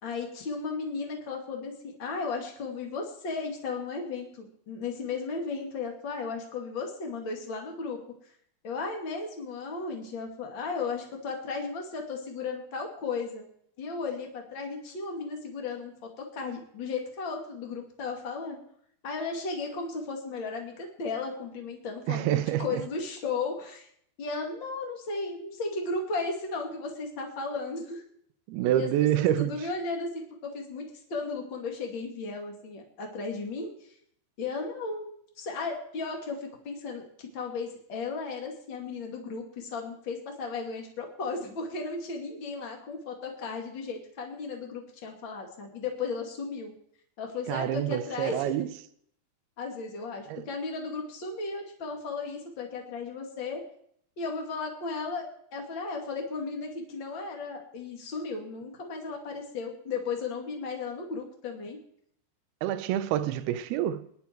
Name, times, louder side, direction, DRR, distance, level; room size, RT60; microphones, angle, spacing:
voice 1, 0.0-8.0 8.6-13.5 13.8-18.6 19.0-23.9 24.2-28.0 28.7-28.9 29.1-30.8 31.1-33.7 34.4-46.7 47.2-48.4 49.6-53.6 54.2-61.8, left 4 dB, 35° left, 2.0 m, -35 dB
voice 2, 22.1-22.8 28.5-29.7 47.5-48.7 50.3-50.4 62.6-64.1, right 12 dB, 80° right, 2.3 m, -27 dB
21.5 x 11.0 x 4.6 m
omnidirectional pair, 5.3 m